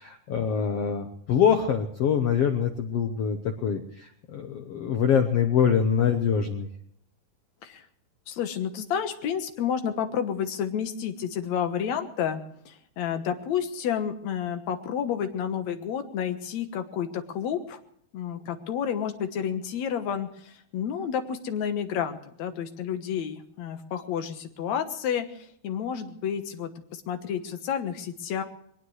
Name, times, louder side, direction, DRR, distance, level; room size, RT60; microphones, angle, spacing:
voice 1, 0.0-6.7, left 7 dB, 80° left, 5 dB, 1.4 m, -24 dB
voice 2, 8.3-17.8 18.1-28.4, left 8 dB, 60° left, 7 dB, 2.1 m, -30 dB
22.0 x 19.0 x 3.2 m, 0.69 s
omnidirectional pair, 4.3 m